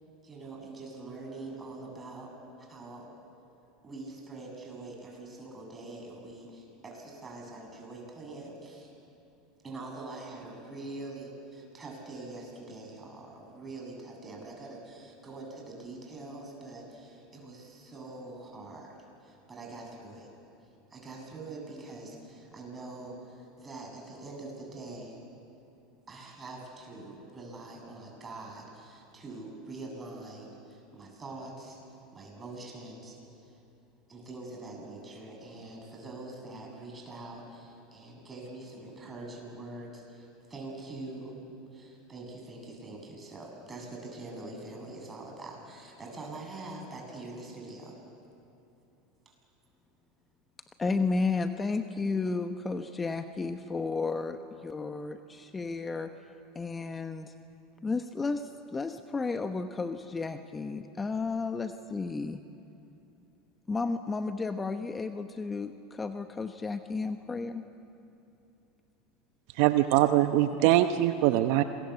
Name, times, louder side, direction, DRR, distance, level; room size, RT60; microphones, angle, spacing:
voice 1, 0.2-2.3 2.6-3.1 3.8-8.9 9.6-20.3 20.9-25.2 26.1-31.8 32.1-33.2 34.1-41.4 41.7-48.0 49.2-49.3, right 2 dB, 25° right, 0 dB, 7.9 m, -44 dB
voice 2, 50.8-56.1 56.5-57.3 57.8-62.4 63.7-67.7, left 4 dB, 20° left, 8 dB, 1.1 m, -33 dB
voice 3, 69.6-71.6, right 14 dB, 65° right, 9 dB, 0.9 m, -23 dB
27.5 x 21.0 x 8.3 m, 2.9 s
hypercardioid pair, 90°, 0 cm